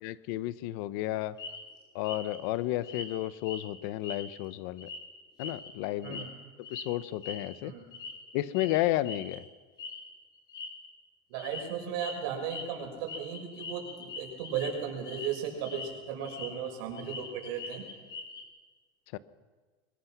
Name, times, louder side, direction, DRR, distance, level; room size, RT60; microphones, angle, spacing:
voice 1, 0.0-1.4 1.9-4.9 5.4-6.3 6.7-7.7 8.3-9.4 19.1-19.2, left 15 dB, 65° left, 14 dB, 1.0 m, -32 dB
sound 1, 1.4-1.6 2.0-2.4 2.8-3.1 3.4-3.6 4.0-4.5 4.8-5.0 5.4-6.3 6.6-6.8 7.2-7.4 7.9-8.2 8.5-8.8 9.0-9.4 9.8-10.0 10.4-10.7 11.3-11.6 11.9-12.1 12.4-12.6 13.1-14.7 15.0-15.3 15.6-16.5 16.8-18.4, left 4 dB, 30° left, 5.5 m, -42 dB
voice 2, 11.3-17.8, right 7 dB, 75° right, 2 dB, 6.7 m, -36 dB
24.0 x 21.5 x 6.1 m, 1.4 s
supercardioid pair, 145°, 13 cm